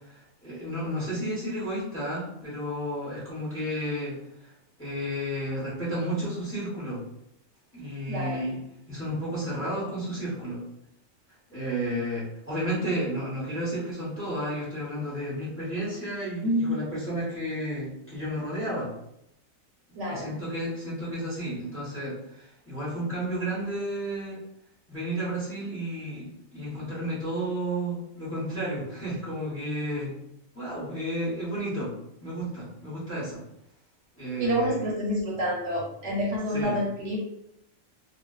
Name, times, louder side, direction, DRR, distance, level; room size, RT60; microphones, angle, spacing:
voice 1, 0.1-4.2 4.4-4.5 4.8-7.0 7.7-8.6 8.9-10.6 11.5-18.9 20.1-24.4 24.9-30.1 30.5-31.9 32.2-33.4 34.1-34.8 36.5-36.8, equal, 10° left, -9 dB, 0.7 m, -32 dB
voice 2, 16.4-16.8 19.9-20.4 34.4-37.2, equal, 65° right, -3 dB, 0.9 m, -28 dB
2.4 x 2.3 x 2.2 m, 0.78 s
omnidirectional pair, 1.4 m